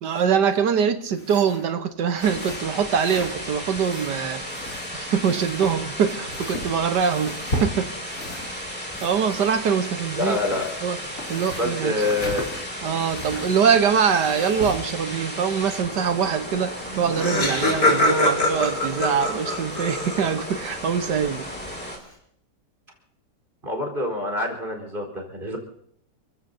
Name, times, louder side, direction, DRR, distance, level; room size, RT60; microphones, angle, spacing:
voice 1, 0.0-4.4 4.9-7.9 8.3-8.5 9.0-10.4 10.8-11.0 11.3-12.0 12.8-21.4, right 7 dB, 80° right, 9 dB, 1.7 m, -23 dB
sound 1, 1.1-1.7 2.1-3.4 3.7-5.0 5.2-8.6 8.9-9.8 10.1-13.6 14.1-14.9, left 1 dB, 50° left, 3.1 m, -36 dB
sound 2, 2.2-22.0, equal, 5° left, 2.8 m, -35 dB
voice 2, 10.1-10.7 11.6-12.5 23.6-25.6, left 2 dB, 30° right, 0 dB, 4.6 m, -26 dB
Laughter, 16.6-16.7 16.8-20.5, left 1 dB, 70° left, 6.3 m, -23 dB
29.5 x 16.0 x 2.8 m, 0.68 s
omnidirectional pair, 1.8 m